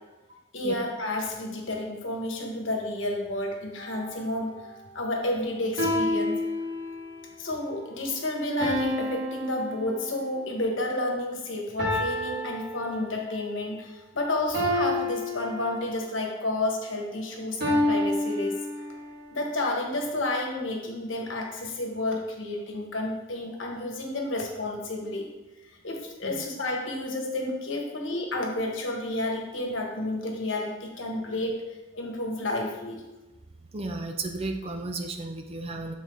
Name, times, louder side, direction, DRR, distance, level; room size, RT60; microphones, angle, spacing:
voice 1, 0.5-4.5 4.9-6.4 7.4-18.6 19.3-25.3 25.8-31.6 31.9-33.0, left 1 dB, 70° left, 1 dB, 1.2 m, -30 dB
sound 1, 3.8-4.2 5.8-7.3 8.6-10.4 11.8-13.4 14.5-16.2 17.6-19.2, left 1 dB, 55° right, 1.8 m, -29 dB
voice 2, 33.7-35.9, right 2 dB, 30° right, 5 dB, 0.5 m, -33 dB
8.1 x 4.2 x 3.6 m, 1.1 s
head